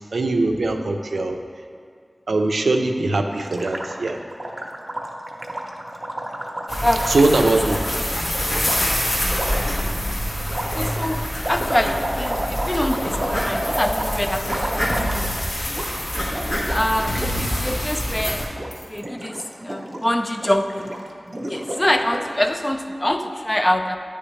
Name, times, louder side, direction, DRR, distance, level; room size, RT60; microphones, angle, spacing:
voice 1, 0.1-1.4 2.3-4.2 7.1-7.8, right 2 dB, 90° right, 4 dB, 0.4 m, -21 dB
Gurgling, 3.4-8.0 8.6-8.8 9.3-9.7 10.5-15.4 15.7-15.9 16.1-17.3 17.6-17.8 18.1-18.7 18.9-22.4, right 1 dB, 40° right, 0.7 m, -31 dB
sound 1, 6.7-18.4, equal, 90° left, 1.4 m, -26 dB
voice 2, 10.6-14.6 14.9-15.3 15.6-15.7 16.7-18.5 18.9-19.4 19.6-20.9 21.5-24.0, left 1 dB, 20° left, 6 dB, 0.4 m, -24 dB
sound 2, 14.3-14.6 14.9-15.7 16.0-16.3 16.5-18.4 18.7-19.0, equal, 70° left, 0.7 m, -31 dB
9.6 x 3.4 x 3.1 m, 2.1 s
wide cardioid pair, 65°, 0 cm